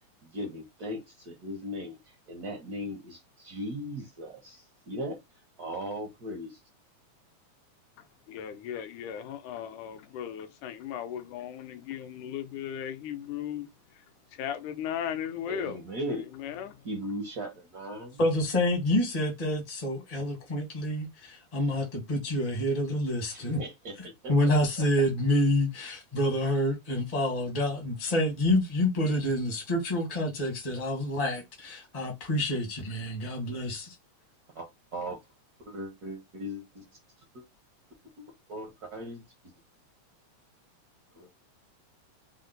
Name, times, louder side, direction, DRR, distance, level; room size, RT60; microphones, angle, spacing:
voice 1, 0.2-5.2 5.6-6.6 15.5-16.3 16.8-18.2 23.3-24.3 34.5-35.2 35.7-36.8 37.3-37.4 38.2-38.3 38.5-39.2 41.1-41.3, equal, 75° right, 0.8 m, -38 dB
voice 2, 8.3-13.7 14.4-15.8 16.3-16.8, left 9 dB, 85° left, 2.3 m, -36 dB
voice 3, 18.2-23.6 24.3-33.9, left 1 dB, 40° left, 0.5 m, -28 dB
5.3 x 2.2 x 3.9 m
omnidirectional pair, 3.5 m